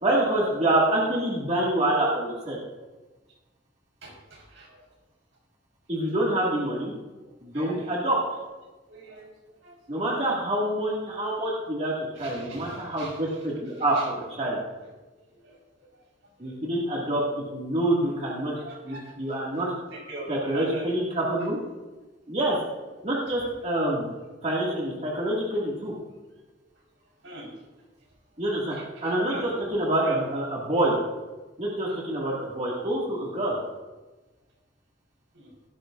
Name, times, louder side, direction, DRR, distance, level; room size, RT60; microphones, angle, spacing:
voice 1, 0.0-2.6 5.9-6.9 7.4-8.2 9.9-11.9 12.2-14.6 16.4-17.2 17.5-18.5 18.8-19.7 20.3-21.6 22.3-22.6 23.0-24.1 24.4-25.9 28.4-28.8 29.0-29.4 29.7-31.0 31.6-33.6, right 1 dB, 35° right, -5 dB, 2.2 m, -26 dB
voice 2, 4.0-5.0 6.7-6.8 7.2-8.0 8.3-8.4 8.9-10.1 12.1-14.1 15.1-16.6 16.9-17.0 18.0-18.1 18.6-21.0 21.4-21.5 22.3-22.4 23.3-23.5 26.4-28.4 28.7-29.6 30.0-30.2 35.3-35.5, right 1 dB, 85° right, -2 dB, 4.7 m, -44 dB
17.0 x 12.5 x 2.6 m, 1.2 s
head